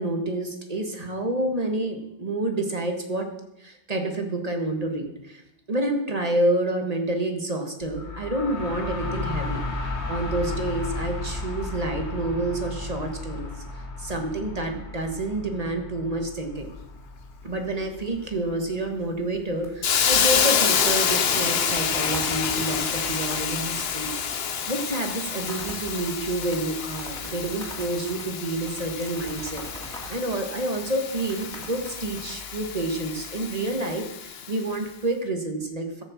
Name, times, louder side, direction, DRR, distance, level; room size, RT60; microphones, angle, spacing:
voice 1, 0.0-3.3 3.6-5.4 5.7-13.5 14.0-16.7 17.4-36.0, right 1 dB, 35° right, 4 dB, 1.7 m, -29 dB
sound 1, 7.8-19.5, left 2 dB, 90° left, 1.8 m, -34 dB
sound 2, 19.6-20.1 20.3-20.4 20.8-33.3, equal, 5° left, 3.0 m, -42 dB
Hiss, 19.8-34.6, left 7 dB, 65° left, 1.1 m, -28 dB
13.0 x 6.7 x 7.3 m, 0.85 s
omnidirectional pair, 1.1 m